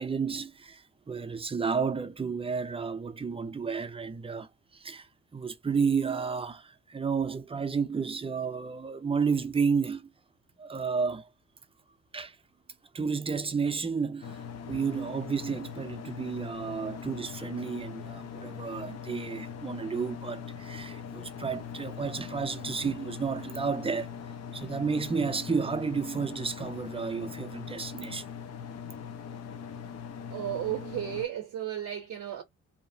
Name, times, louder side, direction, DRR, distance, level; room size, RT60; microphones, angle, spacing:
voice 1, 0.0-10.1 10.6-11.3 12.1-12.4 12.9-24.1 24.5-28.3, right 5 dB, 20° right, 0.5 m, -32 dB
sound 1, 14.2-31.2, left 7 dB, 55° left, 0.6 m, -41 dB
voice 2, 30.3-32.4, right 11 dB, 65° right, 0.7 m, -34 dB
2.8 x 2.0 x 2.5 m
cardioid pair, 90°, 30 cm